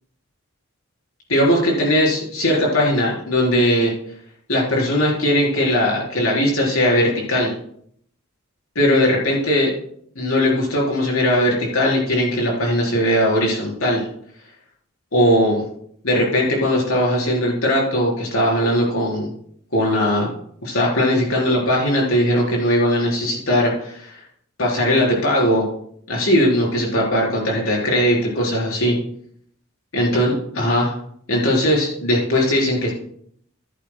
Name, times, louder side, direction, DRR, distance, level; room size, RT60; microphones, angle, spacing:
voice 1, 1.3-3.9 4.5-7.5 8.7-9.7 10.2-14.1 15.1-15.6 16.0-19.3 19.7-20.3 20.6-24.2 24.6-25.7 26.1-29.0 29.9-30.9 31.3-32.9, equal, 75° left, -3 dB, 4.3 m, -19 dB
14.5 x 11.0 x 2.3 m, 0.66 s
head